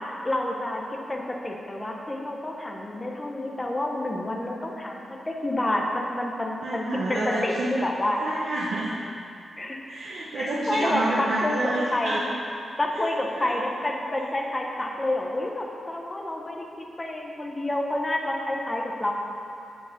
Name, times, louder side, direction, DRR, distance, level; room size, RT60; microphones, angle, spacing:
voice 1, 0.2-0.8 1.1-8.2 9.6-9.8 10.3-12.3 12.8-19.1, left 1 dB, 15° left, 0 dB, 0.8 m, -29 dB
voice 2, 6.6-7.7 8.2-8.9 9.9-12.2 13.4-13.5, right 2 dB, 75° right, -6 dB, 0.9 m, -28 dB
8.7 x 4.6 x 6.5 m, 2.6 s
wide cardioid pair, 180°, 0 cm